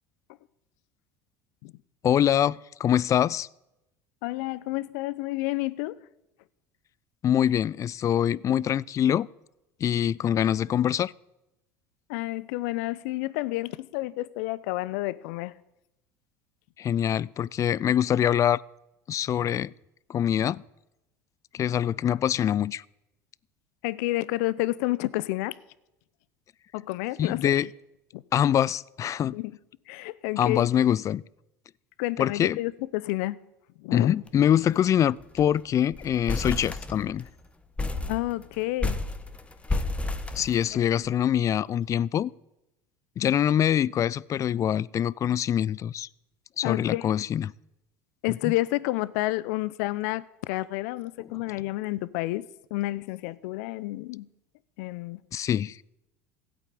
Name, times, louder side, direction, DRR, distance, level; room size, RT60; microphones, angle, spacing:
voice 1, 2.0-3.5 7.2-9.3 9.8-11.1 16.8-18.6 19.1-19.7 20.1-20.6 21.5-22.8 27.2-27.7 28.3-29.3 30.4-31.2 32.2-32.6 33.9-37.3 40.3-42.3 43.2-46.1 46.6-47.5 48.4-48.5 55.3-55.8, left 10 dB, 40° left, 0.4 m, -24 dB
voice 2, 4.2-6.0 12.1-15.6 23.8-25.6 26.7-27.6 28.1-28.2 29.3-29.6 29.9-30.7 32.0-33.4 33.8-34.1 38.1-39.0 40.8-41.0 46.6-47.0 48.2-52.5 52.7-54.3 54.8-55.2, left 19 dB, 70° left, 0.7 m, -30 dB
sound 1, 34.3-34.5 34.8-34.9 35.2-35.6 35.9-37.3 37.8-41.1, left 2 dB, 15° left, 1.4 m, -31 dB
16.0 x 9.0 x 8.5 m
hypercardioid pair, 85°, 9 cm